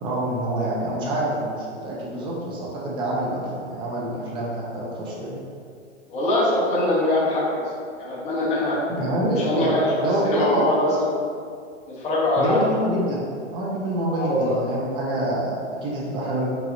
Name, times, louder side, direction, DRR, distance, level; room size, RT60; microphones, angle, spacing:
voice 1, 0.0-5.4 9.0-9.7 10.0-10.6 12.4-13.3 13.5-16.5, right 1 dB, 15° right, -4 dB, 0.5 m, -26 dB
voice 2, 6.1-7.7 8.0-8.8 9.4-11.1 11.9-12.6 14.2-14.5, left 1 dB, 20° left, -7 dB, 1.0 m, -23 dB
4.9 x 4.0 x 2.6 m, 2.2 s
hypercardioid pair, 145°, 36 cm